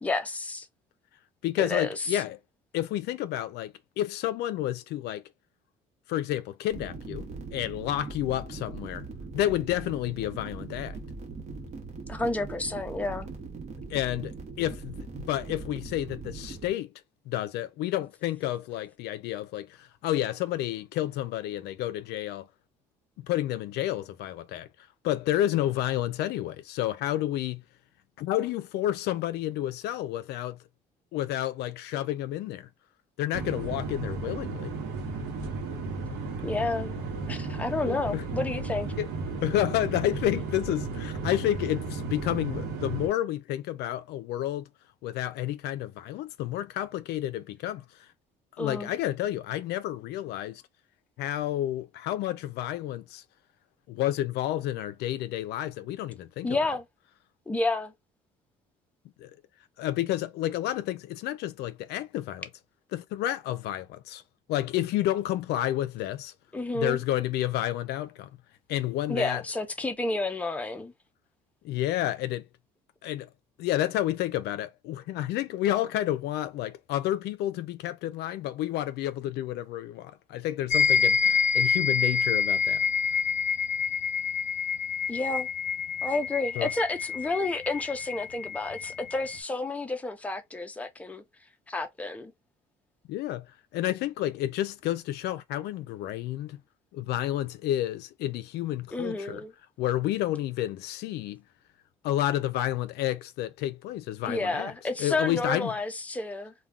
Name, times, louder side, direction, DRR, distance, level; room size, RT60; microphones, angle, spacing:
voice 1, 0.0-0.7 1.6-2.2 12.1-13.3 36.4-36.9 37.3-38.9 48.6-48.9 56.4-56.8 57.5-57.9 66.5-67.0 69.1-70.9 85.1-85.5 86.0-91.2 91.7-92.3 98.9-99.5 104.3-106.5, left 2 dB, 10° left, 0.6 m, -30 dB
voice 2, 1.4-2.4 2.7-5.2 6.1-9.1 9.3-11.0 13.9-16.9 17.3-22.5 23.2-24.7 25.0-27.6 28.2-30.6 31.1-32.7 33.2-34.7 37.8-38.2 39.0-39.1 39.4-44.6 45.0-47.8 48.6-50.6 51.2-53.2 53.9-56.6 59.2-59.3 59.8-62.5 62.9-64.2 64.5-66.3 66.7-68.3 68.7-69.4 71.6-72.5 73.0-73.3 73.6-82.8 86.6-86.7 93.1-93.5 93.7-96.6 96.9-99.4 99.8-101.4 102.0-104.7 105.0-105.7, left 13 dB, 80° left, 0.4 m, -30 dB
sound 1, 6.7-16.7, right 3 dB, 40° right, 0.9 m, -40 dB
sound 2, 33.3-43.1, right 3 dB, 75° right, 0.9 m, -34 dB
sound 3, 80.7-89.4, left 6 dB, 45° left, 0.8 m, -27 dB
2.3 x 2.2 x 3.5 m
cardioid pair, 110°, 17 cm